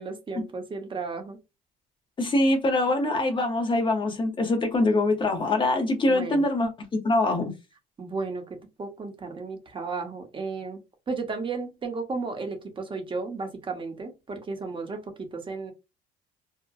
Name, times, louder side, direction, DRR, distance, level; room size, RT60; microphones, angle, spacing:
voice 1, 0.0-1.4 6.0-6.5 8.0-10.8 11.1-15.7, right 4 dB, 30° right, 0.8 m, -34 dB
voice 2, 2.2-7.5, left 2 dB, 30° left, 0.8 m, -24 dB
2.8 x 2.2 x 2.4 m
cardioid pair, 95°, 17 cm